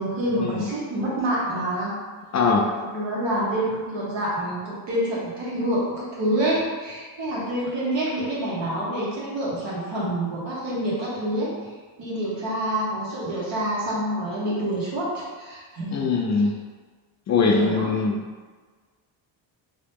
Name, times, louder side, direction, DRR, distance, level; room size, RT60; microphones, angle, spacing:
voice 1, 0.0-2.0 2.8-11.5 12.0-16.1 17.4-17.9, right 1 dB, 65° right, -6 dB, 1.5 m, -27 dB
voice 2, 2.3-2.7 15.9-16.5 17.3-18.2, left 4 dB, 40° left, 0 dB, 0.4 m, -21 dB
2.9 x 2.8 x 3.5 m, 1.4 s
cardioid pair, 110°, 47 cm